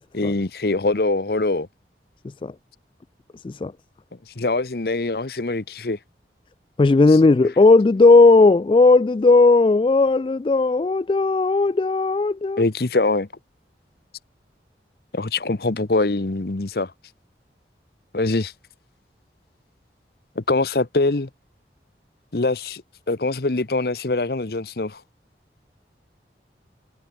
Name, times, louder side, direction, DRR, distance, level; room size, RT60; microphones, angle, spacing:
voice 1, 0.1-1.7 4.4-6.0 12.6-13.3 15.1-16.9 18.1-18.5 20.4-21.3 22.3-22.8 23.1-25.0, left 2 dB, 60° left, 0.9 m, -23 dB
voice 2, 6.8-12.6, left 3 dB, 30° left, 0.3 m, -16 dB
head